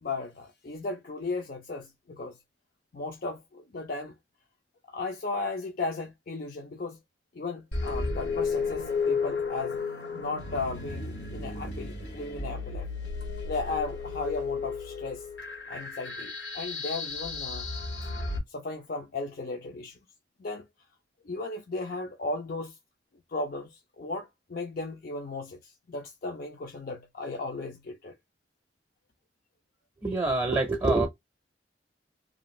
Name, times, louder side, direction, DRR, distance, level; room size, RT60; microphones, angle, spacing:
voice 1, 0.0-2.4 2.9-4.1 4.9-7.0 7.3-9.8 10.2-12.9 13.4-15.3 15.7-17.7 18.5-20.0 20.4-20.7 21.2-22.8 23.3-28.2 30.4-30.6, left 3 dB, 50° left, 0.5 m, -35 dB
sound 1, 7.7-18.4, left 4 dB, 80° left, 1.1 m, -33 dB
voice 2, 30.0-31.1, right 2 dB, 20° right, 0.6 m, -25 dB
2.6 x 2.4 x 3.0 m
head